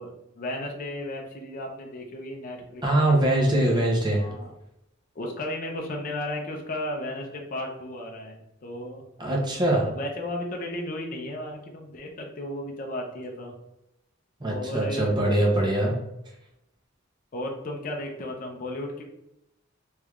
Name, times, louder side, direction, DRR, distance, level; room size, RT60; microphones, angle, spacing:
voice 1, 0.0-3.1 4.2-4.5 5.1-9.0 9.8-13.5 14.4-15.2 17.3-19.0, left 1 dB, 40° left, 1 dB, 0.5 m, -34 dB
voice 2, 2.8-4.3 9.2-9.9 14.4-16.0, right 1 dB, 20° right, -1 dB, 0.6 m, -23 dB
3.2 x 3.2 x 2.4 m, 0.85 s
head